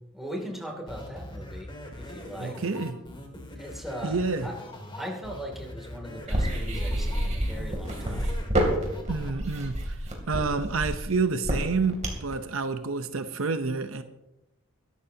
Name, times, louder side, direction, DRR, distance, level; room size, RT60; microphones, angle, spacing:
voice 1, 0.1-2.7 3.6-4.6 4.9-8.4, equal, ahead, -1 dB, 2.7 m, -39 dB
sound 1, 0.9-9.3, left 1 dB, 25° left, 2.2 m, -42 dB
voice 2, 2.4-3.0 4.0-4.5 9.1-10.0 10.3-14.0, right 4 dB, 75° right, 9 dB, 0.8 m, -28 dB
sound 2, 6.3-12.3, equal, 35° right, 3.0 m, -28 dB
22.0 x 12.0 x 2.8 m, 0.91 s
head